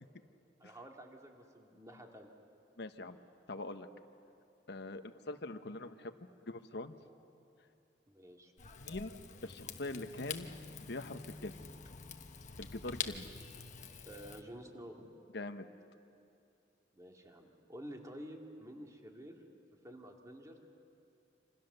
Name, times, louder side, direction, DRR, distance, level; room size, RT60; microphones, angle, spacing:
voice 1, 0.6-2.3 8.1-8.5 14.0-15.1 17.0-19.4 19.8-20.6, equal, 20° right, 1 dB, 2.3 m, -50 dB
voice 2, 2.8-3.2 3.5-3.9 4.7-6.1 6.5-7.0 8.8-9.1 9.4-10.5 10.9-11.6 12.6-13.3 15.3-15.7, left 2 dB, 65° left, 8 dB, 1.1 m, -43 dB
Rain / Fire, 8.6-14.4, left 6 dB, 40° left, 1.2 m, -46 dB
27.0 x 26.5 x 6.9 m, 2.6 s
head